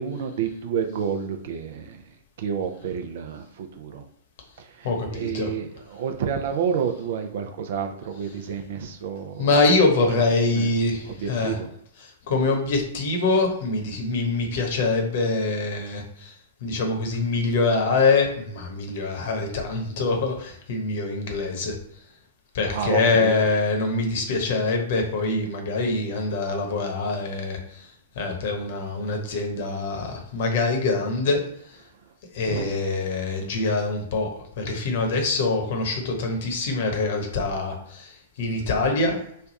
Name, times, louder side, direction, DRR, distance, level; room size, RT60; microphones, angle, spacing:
voice 1, 0.0-4.0 4.6-9.5 10.5-10.7 11.1-11.7 22.6-23.4 32.4-32.7, right 7 dB, 55° right, 6 dB, 0.5 m, -30 dB
voice 2, 4.8-5.5 9.4-11.5 12.3-16.3 16.6-21.7 22.5-27.9 28.1-31.4 32.3-34.3 34.6-39.2, left 3 dB, 55° left, 3 dB, 1.0 m, -24 dB
3.3 x 2.3 x 4.1 m, 0.68 s
figure-of-eight pair, 105°, 0 cm